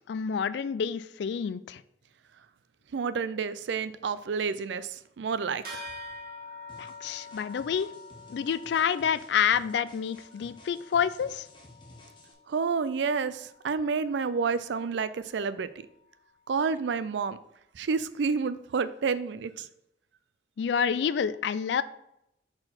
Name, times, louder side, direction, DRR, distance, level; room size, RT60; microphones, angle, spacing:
voice 1, 0.1-1.8 6.8-7.9 8.3-11.5 20.6-21.8, left 7 dB, 70° left, 15 dB, 0.3 m, -28 dB
voice 2, 2.9-5.8 12.5-15.7 16.5-17.4 17.7-19.7, right 5 dB, 75° right, 15 dB, 0.4 m, -29 dB
sound 1, 5.6-15.4, left 2 dB, 50° right, 1.6 m, -47 dB
sound 2, 6.7-12.3, left 1 dB, 25° left, 1.0 m, -54 dB
4.4 x 4.4 x 5.6 m, 0.80 s
head